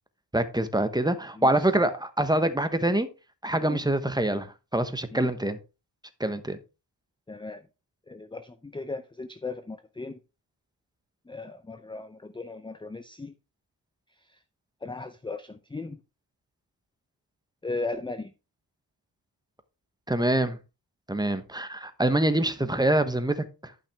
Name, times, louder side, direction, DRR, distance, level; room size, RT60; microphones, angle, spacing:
voice 1, 0.3-3.1 3.4-5.6 6.2-6.6 20.1-20.6 21.1-23.4, right 1 dB, 10° right, 0.9 m, -25 dB
voice 2, 1.4-2.0 3.6-3.8 5.1-5.3 7.3-7.6 8.1-10.2 11.3-13.3 14.3-14.4 14.8-16.0 17.6-18.3 22.6-22.7, left 3 dB, 10° left, 0.5 m, -37 dB
11.5 x 5.7 x 3.5 m
wide cardioid pair, 115°, 44 cm